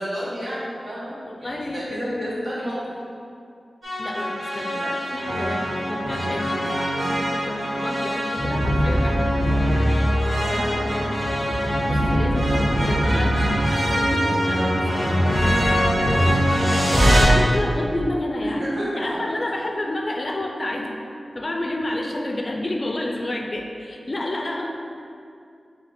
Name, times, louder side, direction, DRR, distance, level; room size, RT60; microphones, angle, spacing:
voice 1, 0.0-2.8 10.3-11.1 18.4-19.4 21.9-22.0, equal, 55° right, -8 dB, 1.4 m, -30 dB
voice 2, 1.2-2.1 4.0-9.4 11.9-18.7 19.0-20.9 21.3-24.7, left 1 dB, 45° left, 2 dB, 0.4 m, -30 dB
sound 1, 3.8-17.2, equal, 70° right, 1.4 m, -22 dB
4.2 x 2.8 x 4.2 m, 2.4 s
wide cardioid pair, 60°, 0 cm